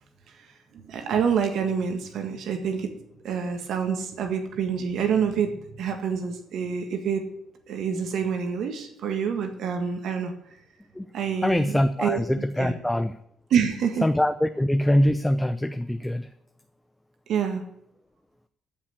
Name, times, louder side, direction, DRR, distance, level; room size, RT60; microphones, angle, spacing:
voice 1, 0.7-3.0 3.2-7.2 7.7-10.3 11.1-12.7 13.5-14.1 17.3-17.6, right 7 dB, 75° right, 6 dB, 1.7 m, -27 dB
voice 2, 11.4-13.1 14.0-16.3, left 1 dB, 10° left, 10 dB, 0.7 m, -23 dB
13.5 x 5.9 x 8.3 m, 0.75 s
cardioid pair, 90°, 0 cm